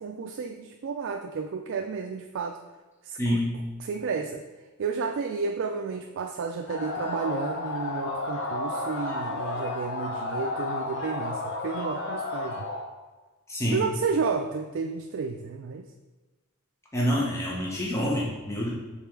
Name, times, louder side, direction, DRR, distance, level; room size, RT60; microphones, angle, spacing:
voice 1, 0.0-2.6 3.0-3.4 3.8-4.4 4.8-12.7 13.7-15.9, right 5 dB, 55° right, 4 dB, 0.3 m, -31 dB
voice 2, 3.2-3.6 13.5-13.9 16.9-18.7, equal, 15° left, -4 dB, 0.9 m, -27 dB
sound 1, 6.7-12.9, left 2 dB, 60° left, 0.9 m, -32 dB
5.6 x 4.1 x 4.5 m, 1.3 s
head